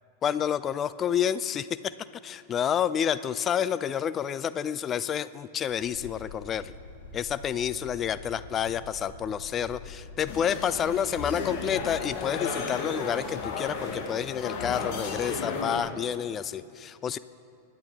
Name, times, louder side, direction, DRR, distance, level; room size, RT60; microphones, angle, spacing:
voice 1, 0.2-1.7 2.2-6.7 7.1-17.2, left 8 dB, 25° left, 15 dB, 0.4 m, -29 dB
sound 1, 5.7-12.1, left 2 dB, 85° left, 2.9 m, -45 dB
sound 2, 10.3-15.8, left 4 dB, 45° left, 1.5 m, -34 dB
23.5 x 9.8 x 3.5 m, 2.5 s
figure-of-eight pair, 90°, 0 cm